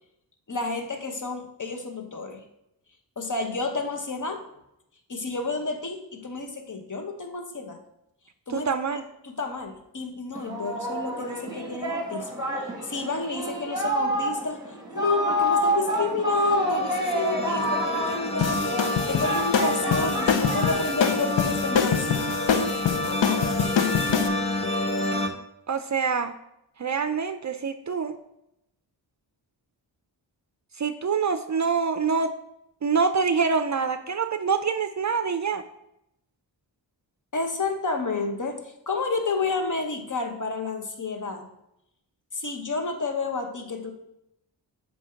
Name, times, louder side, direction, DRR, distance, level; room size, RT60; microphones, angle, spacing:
voice 1, 0.5-2.4 3.2-4.4 5.1-7.8 8.5-12.4 12.8-22.1 22.9-23.5 37.3-41.5 42.3-43.9, left 3 dB, 45° left, 5 dB, 1.1 m, -30 dB
voice 2, 8.5-9.0 25.7-26.3 26.8-28.2 30.8-32.4 32.8-35.6, right 5 dB, 40° right, 10 dB, 0.5 m, -25 dB
Singing, 10.3-21.3, equal, 10° right, 1.7 m, -28 dB
sound 1, 16.5-25.3, left 1 dB, 15° left, 1.0 m, -28 dB
sound 2, 18.4-24.3, left 7 dB, 80° left, 0.8 m, -25 dB
8.0 x 2.9 x 5.8 m, 0.82 s
cardioid pair, 55°, 44 cm